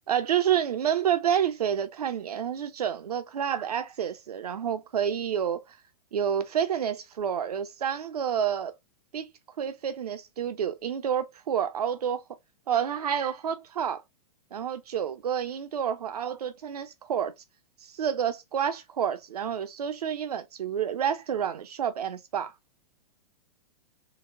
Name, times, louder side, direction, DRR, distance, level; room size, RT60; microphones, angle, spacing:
voice 1, 0.1-5.6 6.1-8.7 9.1-9.3 9.6-12.2 12.7-14.0 14.5-17.3 17.9-22.5, right 9 dB, 85° right, 0.5 m, -29 dB
3.8 x 2.1 x 2.5 m
hypercardioid pair, 115°, 19 cm